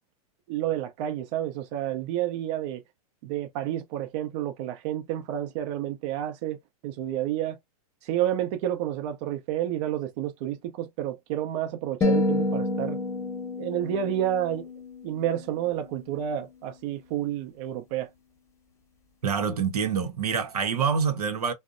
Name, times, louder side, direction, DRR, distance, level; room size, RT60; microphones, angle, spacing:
voice 1, 0.5-2.8 3.2-6.6 6.8-7.6 8.0-13.0 13.6-14.7 15.0-18.1, right 11 dB, 55° right, 0.6 m, -30 dB
sound 1, 12.0-16.3, left 2 dB, 15° left, 0.9 m, -29 dB
voice 2, 19.2-21.5, right 6 dB, 90° right, 0.8 m, -26 dB
2.6 x 2.1 x 2.4 m
hypercardioid pair, 115°, 19 cm